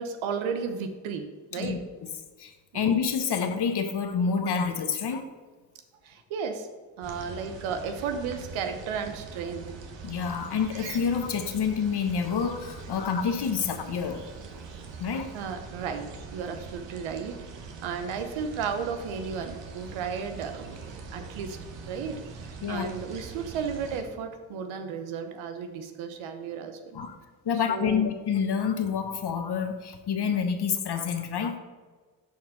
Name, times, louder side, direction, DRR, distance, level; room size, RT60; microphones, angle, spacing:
voice 1, 0.0-1.8 6.0-6.7 7.0-9.7 15.3-16.1 16.3-17.4 17.8-21.6 21.9-27.0 27.5-28.1, right 6 dB, 80° right, 7 dB, 0.9 m, -34 dB
voice 2, 1.5-2.1 2.4-5.2 10.0-14.2 15.0-15.3 22.6-22.9 26.9-27.2 27.4-31.6, left 6 dB, 55° left, 7 dB, 1.1 m, -28 dB
sound 1, 7.0-24.0, right 5 dB, 65° right, 1.3 m, -43 dB
11.5 x 4.5 x 4.0 m, 1.4 s
hypercardioid pair, 40°, 48 cm